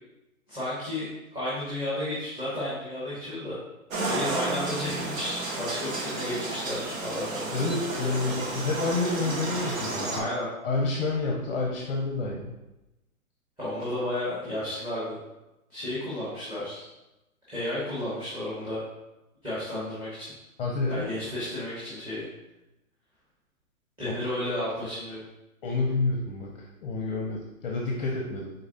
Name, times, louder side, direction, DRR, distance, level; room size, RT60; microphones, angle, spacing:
voice 1, 0.5-3.6 4.0-7.5 10.0-10.5 13.6-15.2 15.7-16.9 17.5-18.8 19.4-20.3 20.9-22.3 24.0-25.2, left 1 dB, 10° right, -12 dB, 1.3 m, -32 dB
sound 1, 3.9-10.2, right 2 dB, 65° right, 1.2 m, -32 dB
voice 2, 7.5-10.3 10.6-12.5 20.6-21.1 24.0-24.3 25.6-28.5, left 3 dB, 40° left, -1 dB, 0.6 m, -29 dB
4.6 x 3.9 x 2.6 m, 0.98 s
hypercardioid pair, 145°, 43 cm